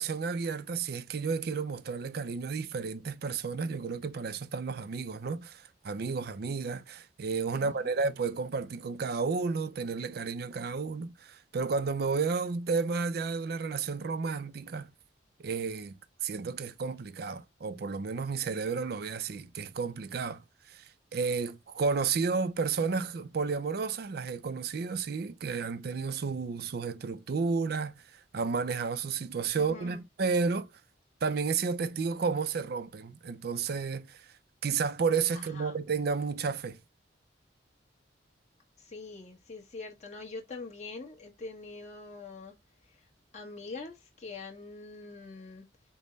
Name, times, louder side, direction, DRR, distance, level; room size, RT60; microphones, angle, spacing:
voice 1, 0.0-14.9 15.4-28.0 28.3-30.7 31.2-34.3 34.6-36.8, right 5 dB, 60° right, 0.4 m, -32 dB
voice 2, 7.5-7.9 29.5-30.0 35.3-35.8 38.8-42.6 42.9-43.0 43.3-45.7, left 3 dB, 40° left, 1.2 m, -44 dB
5.2 x 2.1 x 3.9 m
head